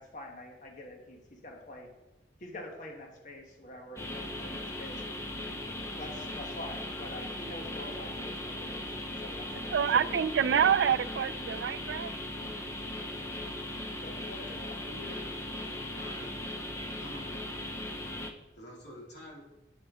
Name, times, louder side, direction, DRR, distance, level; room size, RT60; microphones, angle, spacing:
voice 1, 0.0-1.9 2.4-5.0 6.0-10.2 10.6-10.9 11.3-11.7 14.0-14.9, left 1 dB, 45° left, 2 dB, 1.2 m, -46 dB
sound 1, 4.0-18.3, left 1 dB, 15° left, 0.6 m, -38 dB
voice 2, 9.7-12.2, right 8 dB, 85° right, 15 dB, 0.4 m, -27 dB
voice 3, 14.9-16.3 17.0-17.4 18.6-19.4, left 1 dB, 80° left, -3 dB, 2.4 m, -47 dB
8.5 x 7.6 x 3.6 m, 1.1 s
head